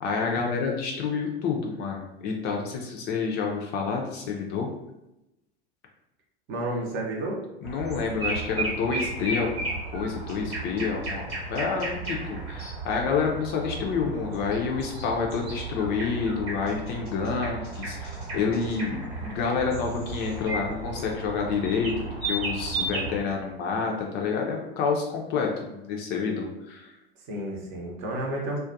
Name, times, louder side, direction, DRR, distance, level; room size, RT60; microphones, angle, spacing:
voice 1, 0.0-4.7 7.6-21.9 22.2-26.9, left 5 dB, 35° left, 0 dB, 0.4 m, -28 dB
voice 2, 6.5-7.4 27.3-28.6, right 1 dB, 40° right, -1 dB, 0.7 m, -31 dB
sound 1, 7.6-23.2, right 3 dB, 80° right, 1.0 m, -34 dB
2.3 x 2.1 x 2.6 m, 0.93 s
figure-of-eight pair, 85°, 31 cm